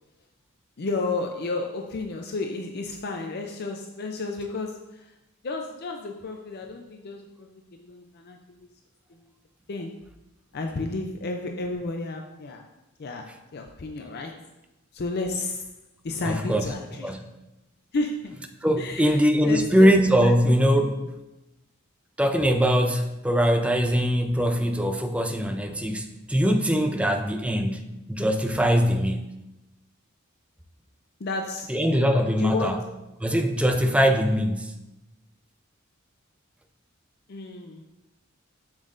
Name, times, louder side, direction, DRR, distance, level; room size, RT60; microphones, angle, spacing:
voice 1, 0.8-5.1 5.4-8.4 9.7-10.0 10.5-12.7 13.0-14.5 14.9-15.7 16.0-17.1 17.9-18.5 18.8-20.0 20.2-20.8 27.1-27.2 31.2-31.7 32.4-32.9 37.3-37.8, left 3 dB, 50° left, 4 dB, 0.5 m, -32 dB
voice 2, 16.2-16.6 17.0-17.2 18.6-21.0 22.2-29.2 31.7-32.8 33.2-34.7, equal, 5° right, 5 dB, 0.5 m, -22 dB
7.4 x 7.1 x 2.6 m, 0.97 s
head